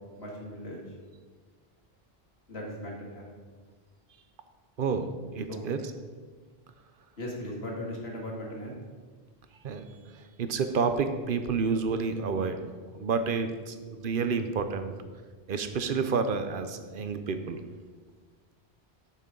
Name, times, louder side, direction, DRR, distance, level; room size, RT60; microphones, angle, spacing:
voice 1, 0.2-0.8 2.5-3.3 5.5-5.7 7.2-8.8, left 1 dB, 85° left, -2 dB, 2.1 m, -38 dB
voice 2, 4.8-5.8 9.6-9.9 10.4-14.9 15.5-17.6, right 5 dB, 60° right, 8 dB, 0.8 m, -29 dB
10.5 x 6.5 x 3.8 m, 1.4 s
omnidirectional pair, 1.0 m